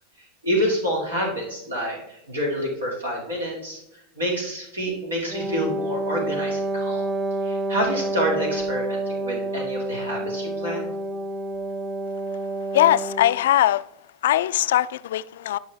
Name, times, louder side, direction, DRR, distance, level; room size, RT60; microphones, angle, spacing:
voice 1, 0.2-7.1 7.4-10.9, equal, 90° right, 2.3 m, -28 dB
Wind instrument woodwind instrument, 5.3-13.5, right 1 dB, 20° right, 1.1 m, -28 dB
voice 2, 12.7-13.8 14.2-15.6, left 13 dB, 70° left, 0.3 m, -20 dB
10.5 x 5.5 x 3.4 m
hypercardioid pair, 90°, 0 cm